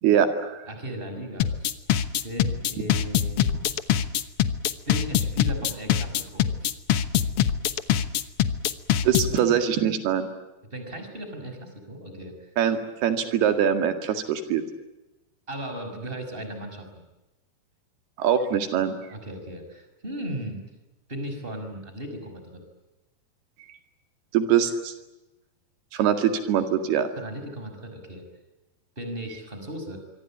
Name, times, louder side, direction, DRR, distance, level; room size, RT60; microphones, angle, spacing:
voice 1, 0.0-0.7 9.0-10.3 12.6-14.6 18.2-19.0 24.3-24.9 25.9-27.1, right 8 dB, 90° right, 8 dB, 4.1 m, -23 dB
voice 2, 0.7-1.8 2.2-3.5 4.9-6.7 10.7-12.5 15.5-17.0 19.1-20.6 21.1-22.6 27.2-28.2 29.0-30.0, right 1 dB, 15° right, 6 dB, 6.0 m, -36 dB
sound 1, 1.4-9.4, left 10 dB, 75° left, 1.3 m, -23 dB
26.0 x 25.0 x 8.7 m, 1.0 s
omnidirectional pair, 4.4 m